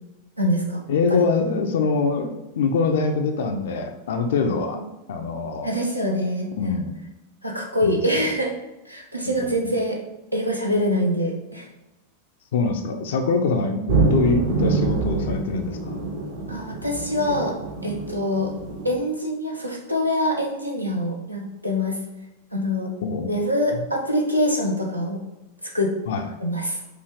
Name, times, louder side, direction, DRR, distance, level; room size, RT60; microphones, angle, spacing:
voice 1, 0.4-0.8 1.1-1.2 5.6-6.8 7.4-8.5 8.9-10.0 10.3-11.7 16.5-17.6 17.8-18.5 18.8-22.0 22.5-22.9 23.3-25.2 25.6-25.9 26.4-26.8, equal, 90° right, 0 dB, 0.6 m, -24 dB
voice 2, 0.9-4.8 5.1-5.7 6.6-6.9 7.8-8.0 9.2-9.5 12.5-16.0 23.0-23.3 23.7-23.9 26.1-26.3, left 4 dB, 60° left, 5 dB, 0.4 m, -24 dB
sound 1, 13.9-18.9, right 4 dB, 65° right, 1.0 m, -25 dB
4.8 x 2.4 x 3.4 m, 0.95 s
figure-of-eight pair, 90°, 0 cm